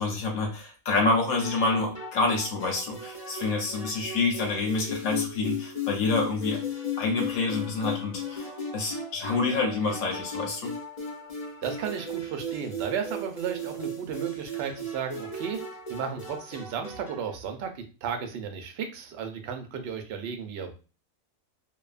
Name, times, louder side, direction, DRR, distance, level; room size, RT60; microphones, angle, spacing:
voice 1, 0.0-6.6 7.0-10.7, left 3 dB, 80° left, 1 dB, 1.2 m, -27 dB
sound 1, 1.4-17.3, left 2 dB, 35° left, 0.7 m, -36 dB
voice 2, 11.6-15.6 15.9-20.7, right 7 dB, 65° right, 5 dB, 0.7 m, -34 dB
2.7 x 2.2 x 2.4 m, 0.34 s
omnidirectional pair, 1.5 m